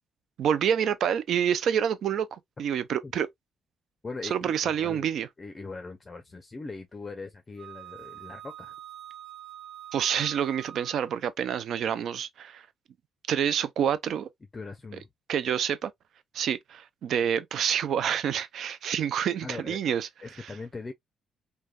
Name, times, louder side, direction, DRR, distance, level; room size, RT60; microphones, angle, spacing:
voice 1, 0.4-3.3 4.3-5.3 9.9-12.7 13.3-14.3 15.3-15.9 16.3-20.1 20.4-20.5, right 8 dB, 70° right, 0.4 m, -27 dB
voice 2, 4.0-5.1 5.4-8.8 14.5-15.1 19.4-20.9, left 3 dB, 30° left, 0.5 m, -41 dB
Wind instrument woodwind instrument, 7.6-11.2, right 11 dB, 35° right, 0.8 m, -45 dB
3.2 x 2.2 x 2.2 m
cardioid pair, 90°, 0 cm